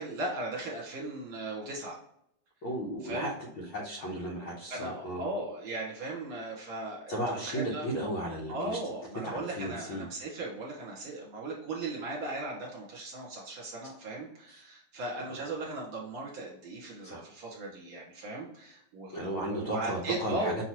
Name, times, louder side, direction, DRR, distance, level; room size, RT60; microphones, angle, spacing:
voice 1, 0.0-2.0 3.0-3.3 4.7-7.9 8.5-20.5, right 2 dB, 55° right, -4 dB, 1.9 m, -37 dB
voice 2, 2.6-5.2 7.1-8.8 9.2-10.1 14.5-14.6 17.0-17.2 19.1-20.7, right 1 dB, 65° left, -5 dB, 1.3 m, -35 dB
5.9 x 2.9 x 3.0 m, 0.73 s
omnidirectional pair, 3.5 m